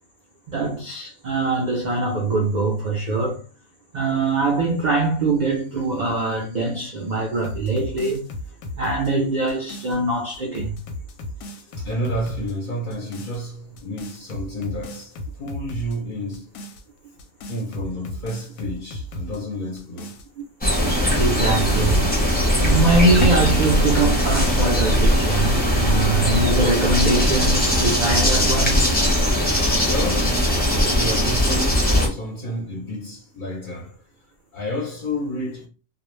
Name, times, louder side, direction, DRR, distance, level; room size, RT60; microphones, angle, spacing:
voice 1, 0.5-3.4 3.9-8.3 8.8-10.8 21.2-22.0 22.6-28.9, right 3 dB, 70° right, 0.4 m, -23 dB
sound 1, 7.4-10.0 10.3-12.5 12.9-13.4 13.8-16.0 16.3-16.8 17.2-19.4 19.8-22.8 23.2-23.5, left 1 dB, 90° left, 1.0 m, -35 dB
voice 2, 11.4-16.6 17.5-20.2 29.5-34.0 34.5-35.7, equal, 50° left, 0.6 m, -31 dB
sound 2, 20.6-32.1, equal, 15° left, 0.4 m, -20 dB
sound 3, 22.4-27.6, right 1 dB, 20° right, 0.8 m, -32 dB
2.3 x 2.0 x 3.0 m
omnidirectional pair, 1.4 m